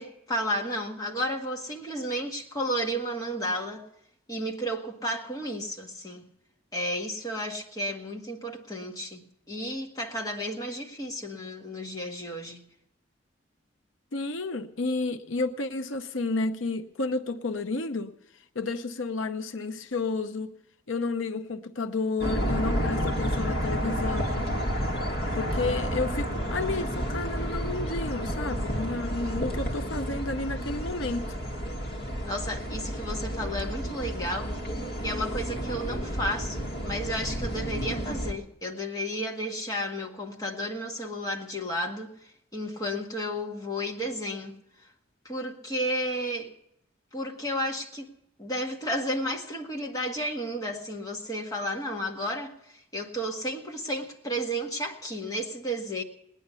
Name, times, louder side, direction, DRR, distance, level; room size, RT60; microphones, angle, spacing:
voice 1, 0.0-3.8 4.3-6.3 6.7-12.6 32.2-42.1 42.5-44.5 45.2-46.5 47.1-48.1 48.4-56.0, equal, 20° left, 1.7 m, -32 dB
voice 2, 14.1-18.1 18.5-20.5 20.9-24.6 25.3-31.4, left 3 dB, 85° left, 0.8 m, -31 dB
sound 1, 22.2-38.3, equal, 55° left, 1.8 m, -31 dB
19.0 x 10.0 x 6.9 m
head